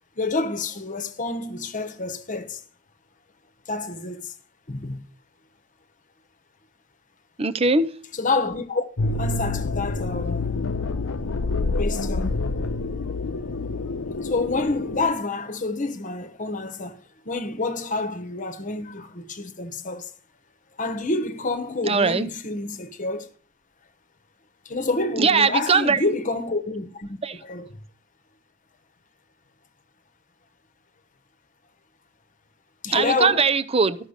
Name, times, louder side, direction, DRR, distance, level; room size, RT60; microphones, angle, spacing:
voice 1, 0.2-2.6 3.7-4.3 4.7-5.0 8.1-8.9 9.1-10.5 11.8-12.4 14.2-20.1 20.8-23.3 24.6-27.7 32.8-33.4, left 3 dB, 40° left, 1.1 m, -28 dB
voice 2, 7.4-7.9 21.8-22.3 25.2-26.0 27.2-27.4 32.9-34.0, right 4 dB, 30° right, 0.6 m, -20 dB
sound 1, 9.0-15.1, left 3 dB, 80° left, 0.8 m, -27 dB
13.5 x 6.4 x 6.6 m
head